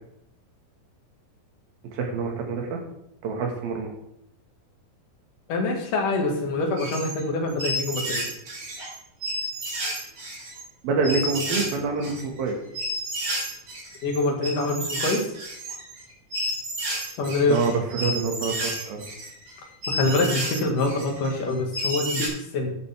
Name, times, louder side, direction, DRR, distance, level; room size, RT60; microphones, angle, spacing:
voice 1, 1.8-2.8 3.2-3.9 10.8-12.6 17.5-19.1, right 4 dB, 80° right, 2 dB, 3.6 m, -26 dB
voice 2, 5.5-8.3 14.0-15.3 17.2-17.6 19.9-22.8, left 2 dB, 65° left, 1 dB, 3.3 m, -25 dB
sound 1, 6.8-7.2 7.5-8.9 9.2-10.6 11.0-11.7 12.0-22.3, equal, 50° right, 4.4 m, -31 dB
13.0 x 9.4 x 3.5 m, 0.80 s
omnidirectional pair, 4.2 m